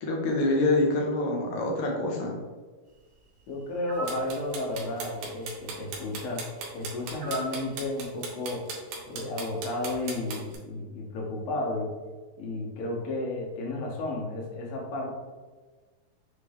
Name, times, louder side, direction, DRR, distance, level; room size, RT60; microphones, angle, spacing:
voice 1, 0.0-2.4, left 2 dB, 70° left, -1 dB, 2.1 m, -26 dB
voice 2, 3.5-8.7 9.1-11.9 12.4-15.1, left 2 dB, 90° left, -2 dB, 2.8 m, -33 dB
sound 1, 3.9-4.3 7.2-7.6, right 2 dB, 70° right, 0.6 m, -36 dB
sound 2, 4.1-10.6, right 4 dB, 90° right, 2.6 m, -37 dB
6.6 x 2.3 x 3.3 m, 1.3 s
omnidirectional pair, 4.0 m